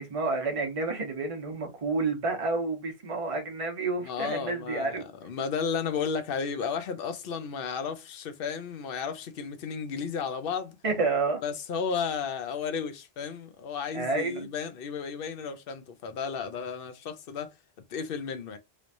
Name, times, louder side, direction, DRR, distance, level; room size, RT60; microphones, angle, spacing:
voice 1, 0.0-5.0 10.8-11.4 13.9-14.5, right 3 dB, 35° right, 1.0 m, -29 dB
voice 2, 4.0-10.8 11.4-17.5 17.9-18.6, left 6 dB, 65° left, 0.8 m, -33 dB
3.3 x 3.1 x 2.6 m
omnidirectional pair, 1.1 m